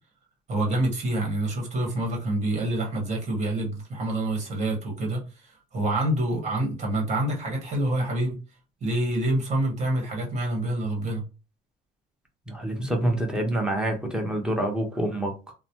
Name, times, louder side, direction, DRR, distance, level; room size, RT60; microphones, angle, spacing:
voice 1, 0.5-8.4 8.8-11.2, right 1 dB, 40° right, 1.5 m, -27 dB
voice 2, 12.5-15.5, right 1 dB, 5° right, 0.9 m, -27 dB
3.0 x 2.1 x 2.8 m
cardioid pair, 110°, 17 cm